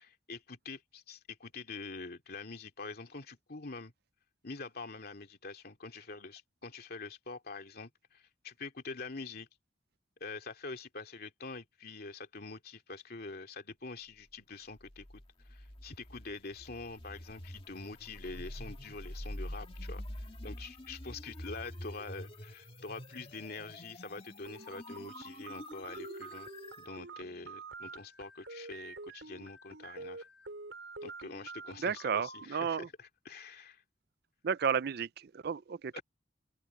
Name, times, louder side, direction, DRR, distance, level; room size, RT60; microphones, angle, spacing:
voice 1, 0.0-3.9 4.4-9.5 10.2-15.2 15.5-26.5 26.8-30.2 31.0-32.8 33.2-33.8 35.9-36.0, left 3 dB, 55° left, 2.6 m, -45 dB
sound 1, 14.8-26.9, left 1 dB, 30° left, 1.9 m, -46 dB
sound 2, 24.4-32.5, right 3 dB, 90° right, 4.6 m, -47 dB
voice 2, 31.8-32.9 34.4-36.0, right 6 dB, 60° right, 0.4 m, -33 dB
open air
head